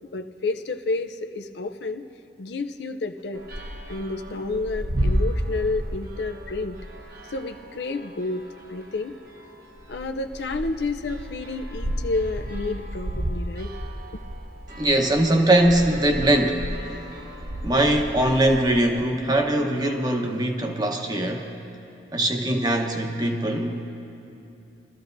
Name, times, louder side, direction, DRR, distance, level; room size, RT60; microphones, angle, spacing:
voice 1, 0.1-2.0 2.4-3.4 3.9-6.8 7.3-8.4 8.7-9.2 9.9-13.7 14.1-14.2, left 3 dB, 70° left, 7 dB, 0.5 m, -30 dB
sound 1, 3.3-18.9, equal, 55° right, 1.1 m, -33 dB
voice 2, 14.7-16.7 17.6-21.5 22.1-23.8, right 1 dB, 25° right, 3 dB, 1.0 m, -21 dB
22.5 x 13.5 x 2.6 m, 2.8 s
head